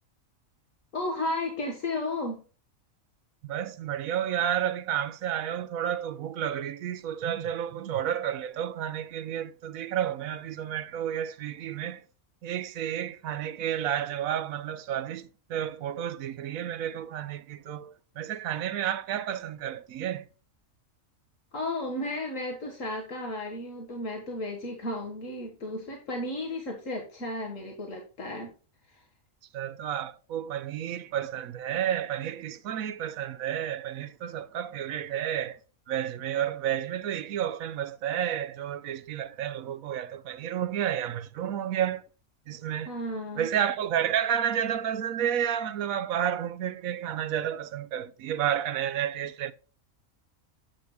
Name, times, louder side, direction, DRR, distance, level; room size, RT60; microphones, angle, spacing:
voice 1, 0.9-2.4 21.5-28.5 28.9-29.0 42.9-43.5, left 1 dB, 70° left, 1.9 m, -34 dB
voice 2, 3.4-12.0 12.4-20.3 29.5-35.6 35.9-42.0 42.5-42.9 43.4-49.5, right 10 dB, 90° right, 1.1 m, -31 dB
10.5 x 7.9 x 2.3 m
omnidirectional pair, 1.4 m